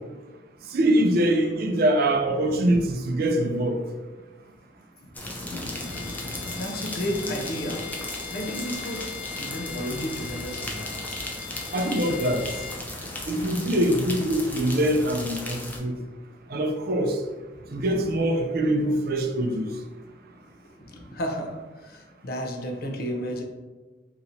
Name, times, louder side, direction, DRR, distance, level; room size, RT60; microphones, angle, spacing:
voice 1, 0.7-3.8 11.7-12.5 13.3-15.9 16.5-17.2 17.7-19.7, right 1 dB, 55° right, 0.4 m, -23 dB
voice 2, 2.5-2.8 6.6-8.0 8.3-11.1 17.5-18.1 20.6-23.4, equal, 55° left, 0.6 m, -33 dB
sound 1, 5.1-15.8, left 1 dB, 10° left, 0.5 m, -36 dB
Bowed string instrument, 5.6-12.8, left 7 dB, 85° left, 0.8 m, -40 dB
2.9 x 2.6 x 4.1 m
head